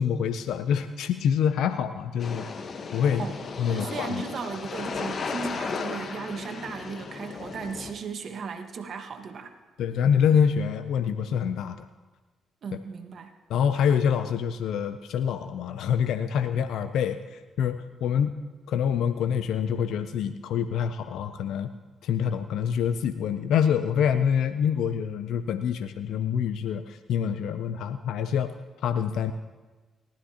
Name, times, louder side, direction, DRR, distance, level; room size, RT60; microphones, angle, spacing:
voice 1, 0.0-2.5 2.9-3.3 3.6-4.2 9.8-11.9 13.5-18.4 18.7-21.7 22.0-28.5 28.8-29.3, left 8 dB, 75° left, 10 dB, 0.5 m, -26 dB
sound 1, 2.2-7.9, left 5 dB, 55° left, 1.1 m, -35 dB
voice 2, 3.7-9.5 12.6-13.3, right 5 dB, 60° right, 6 dB, 1.3 m, -36 dB
19.0 x 13.0 x 2.9 m, 1.3 s
hypercardioid pair, 50°, 0 cm